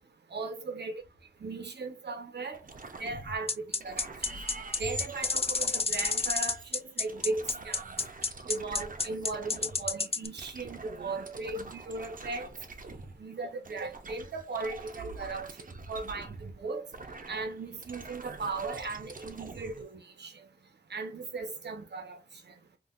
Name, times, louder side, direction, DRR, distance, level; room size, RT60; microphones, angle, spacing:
voice 1, 0.3-1.0 1.4-2.6 3.0-4.1 4.8-7.9 8.5-12.5 13.2-15.5 15.9-16.9 17.3-20.3 20.9-22.2, right 3 dB, 85° right, 1.0 m, -37 dB
sound 1, 2.5-3.5 3.8-9.9 10.4-13.2 13.6-19.8, right 3 dB, 50° right, 0.8 m, -45 dB
sound 2, 3.5-10.3, left 5 dB, 35° left, 0.4 m, -29 dB
3.9 x 2.5 x 2.5 m
wide cardioid pair, 60°, 17 cm